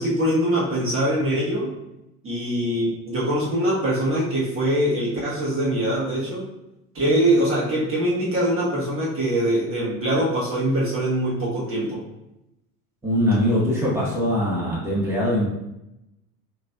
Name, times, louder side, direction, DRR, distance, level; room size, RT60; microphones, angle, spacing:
voice 1, 0.0-1.7 2.2-6.5 6.9-12.0, right 1 dB, 25° right, -6 dB, 1.3 m, -23 dB
voice 2, 13.0-15.5, equal, 5° right, -6 dB, 1.3 m, -22 dB
5.5 x 2.9 x 2.3 m, 0.89 s
figure-of-eight pair, 75°, 47 cm